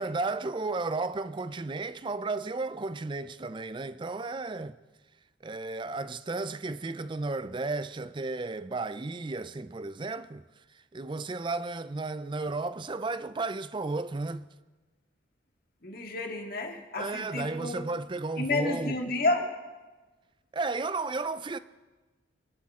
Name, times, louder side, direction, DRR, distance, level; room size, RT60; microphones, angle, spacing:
voice 1, 0.0-4.8 5.4-10.4 10.9-14.5 17.0-19.0 20.5-21.6, right 3 dB, 25° right, 0.4 m, -33 dB
voice 2, 15.8-17.8 18.4-19.5, left 2 dB, 50° left, 2.0 m, -30 dB
24.5 x 11.5 x 3.7 m
head